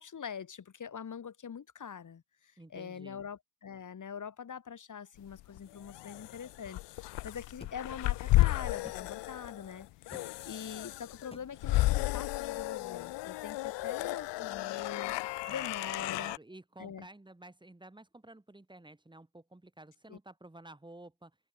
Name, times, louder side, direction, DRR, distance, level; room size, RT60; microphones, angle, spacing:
voice 1, 0.0-16.3 16.8-17.1 20.1-20.2, left 7 dB, 40° left, 5.1 m, -44 dB
voice 2, 2.6-3.2 15.4-21.4, right 2 dB, 10° right, 6.1 m, -52 dB
sound 1, 5.3-16.4, left 19 dB, 60° left, 1.0 m, -33 dB
sound 2, 7.6-7.8 8.8-9.0 10.1-10.3 11.3-11.5, left 2 dB, 10° left, 8.0 m, -50 dB
supercardioid pair, 75°, 47 cm